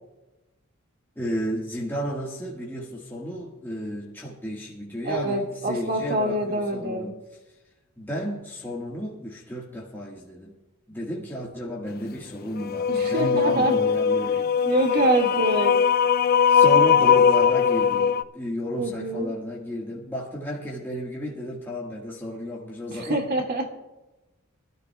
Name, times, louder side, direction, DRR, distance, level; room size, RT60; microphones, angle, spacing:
voice 1, 1.1-7.1 8.0-10.5 10.9-14.5 16.5-23.2, equal, 10° left, -5 dB, 1.5 m, -32 dB
voice 2, 5.1-7.1 12.9-13.8 14.7-15.8 18.8-19.3 22.9-23.7, right 1 dB, 50° right, 2 dB, 1.9 m, -25 dB
sound 1, 12.6-18.2, left 7 dB, 45° left, 0.4 m, -20 dB
23.0 x 13.0 x 2.3 m, 1.1 s
head